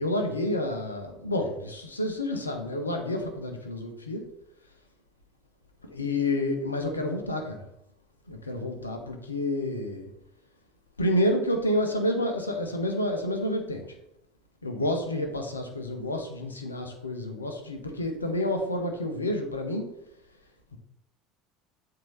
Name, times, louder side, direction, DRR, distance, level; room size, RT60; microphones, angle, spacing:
voice 1, 0.0-4.3 5.8-7.7 8.3-10.1 11.0-14.0 14.6-20.0 20.7-20.8, left 1 dB, 85° left, 4 dB, 0.8 m, -29 dB
7.6 x 2.8 x 5.4 m, 0.79 s
figure-of-eight pair, 70°, 0 cm